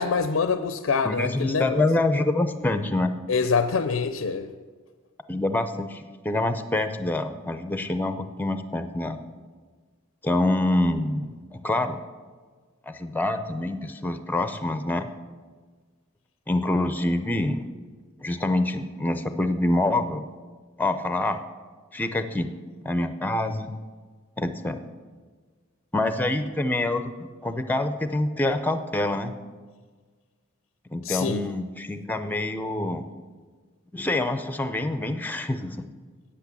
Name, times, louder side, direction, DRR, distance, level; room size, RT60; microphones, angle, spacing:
voice 1, 0.0-1.9 3.3-4.5 31.0-31.5, left 5 dB, 65° left, 10 dB, 0.4 m, -25 dB
voice 2, 1.0-3.1 5.3-9.2 10.2-12.0 12.9-15.1 16.5-17.7 18.2-20.3 20.8-21.4 21.9-22.5 22.8-23.7 24.4-24.8 25.9-27.1 27.4-29.3 30.9-33.1 33.9-35.8, left 2 dB, 10° left, 9 dB, 0.5 m, -26 dB
8.4 x 8.4 x 7.0 m, 1.5 s
head